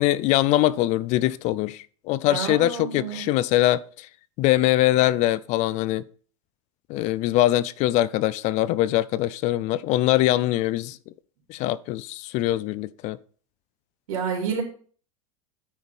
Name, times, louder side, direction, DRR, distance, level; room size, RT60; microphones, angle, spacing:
voice 1, 0.0-4.1 4.4-6.0 6.9-11.0 11.5-13.2, left 15 dB, 40° left, 0.4 m, -22 dB
voice 2, 2.2-3.3 14.1-14.6, right 6 dB, 85° right, 3.2 m, -29 dB
9.7 x 3.6 x 6.0 m
supercardioid pair, 135°, 17 cm